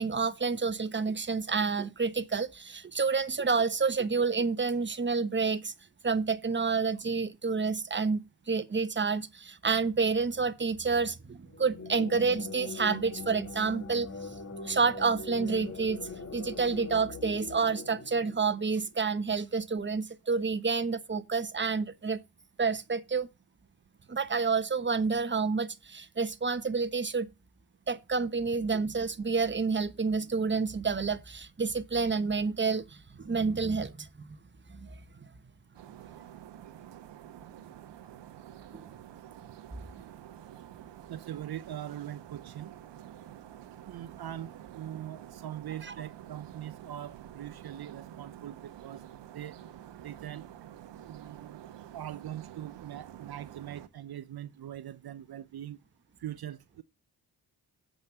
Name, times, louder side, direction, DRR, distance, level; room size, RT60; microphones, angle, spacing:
voice 1, 0.0-5.7 6.0-14.3 14.6-22.2 22.6-23.3 24.1-27.3 27.9-34.4 34.7-34.9 38.7-38.9 45.8-45.9, right 4 dB, 25° right, 1.2 m, -29 dB
sound 1, 11.5-18.9, left 4 dB, 35° left, 1.8 m, -42 dB
sound 2, 35.7-53.9, right 11 dB, 80° right, 1.1 m, -49 dB
voice 2, 41.1-42.8 43.9-49.0 49.3-49.6 50.0-50.5 51.0-51.6 51.9-55.8 56.2-56.8, right 11 dB, 60° right, 0.7 m, -42 dB
7.8 x 5.3 x 7.1 m
cardioid pair, 55°, 42 cm